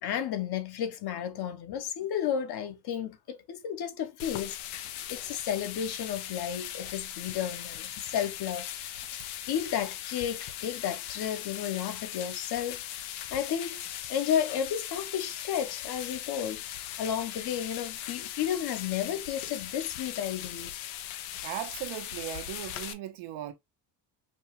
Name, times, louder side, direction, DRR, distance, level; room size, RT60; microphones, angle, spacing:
voice 1, 0.0-8.9 9.5-12.8 13.3-13.8 14.1-16.6 17.0-20.7, left 9 dB, 55° left, 0.9 m, -32 dB
sound 1, 4.2-22.9, left 12 dB, 90° left, 0.8 m, -39 dB
voice 2, 21.4-23.5, right 12 dB, 85° right, 1.1 m, -37 dB
5.3 x 2.3 x 3.0 m
cardioid pair, 125°, 47 cm